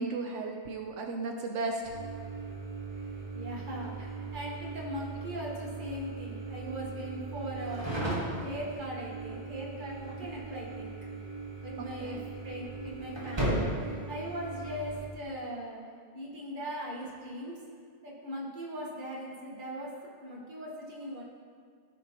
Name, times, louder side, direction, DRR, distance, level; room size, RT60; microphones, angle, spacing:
voice 1, 0.0-1.9 12.0-12.2, right 3 dB, 85° right, 2 dB, 1.0 m, -34 dB
sound 1, 1.8-15.0, right 2 dB, 20° right, 1.9 m, -37 dB
voice 2, 2.9-11.0 11.6-15.9 16.1-17.7 18.0-21.2, equal, 45° right, -3 dB, 1.5 m, -40 dB
15.0 x 5.1 x 2.9 m, 2.1 s
omnidirectional pair, 1.2 m